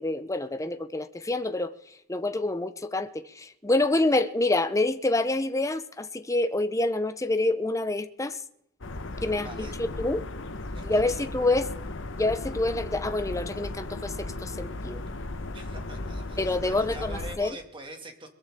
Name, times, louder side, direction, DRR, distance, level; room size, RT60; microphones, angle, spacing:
voice 1, 0.0-1.7 2.1-8.4 9.2-10.3 10.8-11.7 12.2-15.0 16.4-17.6, left 2 dB, 15° left, 0.7 m, -27 dB
sound 1, 8.8-17.4, left 2 dB, 60° left, 1.1 m, -36 dB
voice 2, 9.4-9.7 10.7-11.3 15.5-18.3, right 2 dB, 25° right, 2.2 m, -44 dB
22.0 x 14.0 x 3.7 m
head